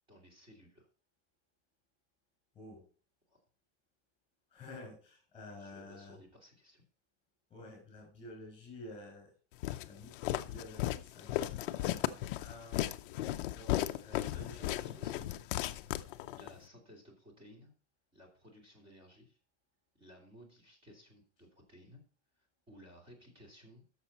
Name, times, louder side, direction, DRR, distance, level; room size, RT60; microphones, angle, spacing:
voice 1, 0.1-0.9 3.3-3.4 5.5-6.8 14.1-15.3 16.3-17.7 18.1-19.4 19.9-22.0 22.4-23.8, equal, 15° right, 0 dB, 2.9 m, -58 dB
voice 2, 4.5-6.2 7.5-9.3 9.8-12.9 13.5-16.1, left 2 dB, 15° left, 2 dB, 5.4 m, -51 dB
Walk footsteps, 9.6-16.5, left 14 dB, 45° left, 0.6 m, -35 dB
11.5 x 6.8 x 4.1 m, 0.39 s
supercardioid pair, 170°, 36 cm